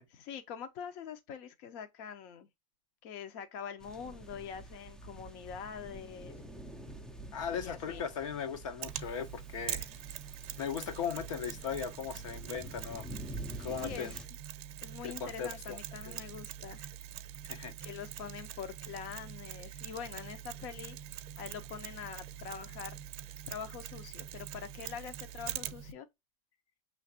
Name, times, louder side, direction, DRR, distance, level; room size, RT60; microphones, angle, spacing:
voice 1, 0.1-2.5 3.0-6.3 7.5-8.0 13.8-14.2 14.8-16.9 17.8-21.0 21.4-23.0 23.5-26.1, left 7 dB, 45° left, 0.7 m, -44 dB
sound 1, 3.8-14.3, right 1 dB, 5° left, 0.4 m, -48 dB
voice 2, 7.3-9.9 10.6-13.1 13.6-14.2 15.0-15.8 16.1-16.2 17.5-17.7, left 7 dB, 70° left, 1.1 m, -38 dB
Mechanisms, 8.8-25.9, right 11 dB, 35° right, 0.7 m, -44 dB
5.8 x 3.1 x 2.8 m
supercardioid pair, 140°, 17 cm